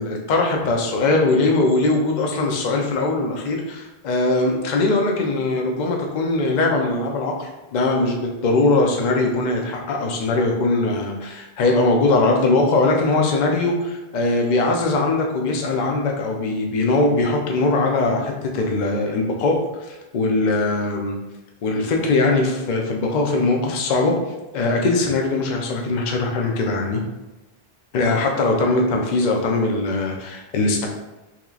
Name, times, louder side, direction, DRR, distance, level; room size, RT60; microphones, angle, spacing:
voice 1, 0.0-21.2 21.6-24.1 24.5-27.0 27.9-30.9, left 2 dB, 55° left, 1 dB, 0.6 m, -21 dB
3.6 x 3.0 x 2.3 m, 1.0 s
omnidirectional pair, 1.1 m